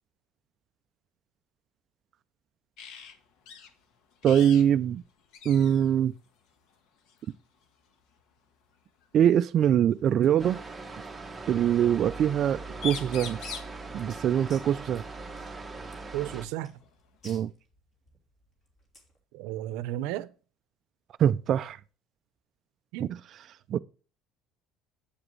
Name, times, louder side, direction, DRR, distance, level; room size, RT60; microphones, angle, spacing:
sound 1, 2.8-3.1 3.5-3.7 4.2-4.7 4.9-5.0 5.3-5.9 7.1-7.3 9.0-9.1 10.2-11.1 12.4-12.5 12.7-13.8 15.7-15.8 16.2-17.2, left 6 dB, 60° left, 1.3 m, -41 dB
voice 1, 4.2-5.0 5.5-6.1 9.1-10.6 11.5-13.4 13.9-15.0 17.2-17.5 21.2-21.8 23.0-23.1 23.7-23.8, right 9 dB, 40° right, 0.3 m, -23 dB
sound 2, 10.4-16.5, right 3 dB, 10° right, 1.0 m, -41 dB
sound 3, 13.1-19.2, left 1 dB, 30° left, 2.9 m, -55 dB
voice 2, 16.1-16.8 19.3-20.3 22.9-23.2 23.7-23.8, right 14 dB, 85° right, 0.6 m, -34 dB
8.7 x 7.5 x 3.1 m
cardioid pair, 160°, 0 cm